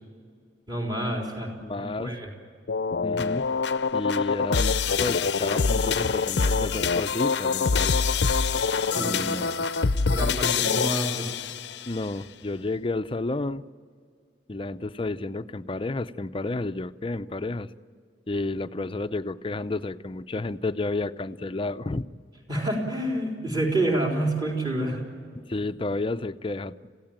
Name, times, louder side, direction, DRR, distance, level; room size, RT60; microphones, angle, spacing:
voice 1, 0.7-2.3 8.9-9.3 10.1-11.3 22.5-25.0, right 1 dB, 25° right, -1 dB, 3.9 m, -28 dB
voice 2, 1.6-2.2 3.0-3.5 3.9-7.9 8.9-9.7 11.9-13.6 14.5-17.7 18.3-22.0 25.5-26.7, left 2 dB, 30° left, 12 dB, 0.6 m, -31 dB
sound 1, 2.7-11.9, left 5 dB, 70° left, 0.6 m, -25 dB
28.0 x 16.0 x 9.0 m, 2.1 s
head